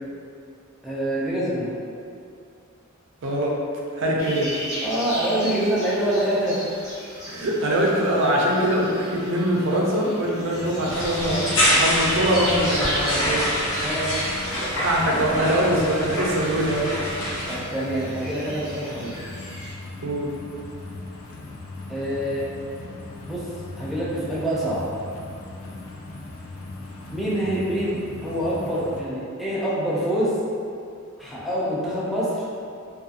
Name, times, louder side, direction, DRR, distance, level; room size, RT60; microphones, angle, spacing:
voice 1, 0.8-1.8 4.8-6.6 13.8-14.3 15.1-15.3 17.5-19.2 21.9-22.5 23.3-23.5 23.8-24.9 27.1-30.4 31.2-32.4, right 1 dB, ahead, -9 dB, 0.4 m, -26 dB
voice 2, 3.2-3.6 4.0-4.6 7.3-13.4 14.8-16.9 20.0-20.3, right 1 dB, 60° right, -2 dB, 0.5 m, -23 dB
sound 1, 4.2-19.7, equal, 35° left, 1.2 m, -36 dB
sound 2, 10.5-29.0, left 2 dB, 80° left, 0.4 m, -38 dB
sound 3, 10.9-17.6, equal, 65° left, 0.7 m, -26 dB
2.7 x 2.3 x 2.4 m, 2.4 s
head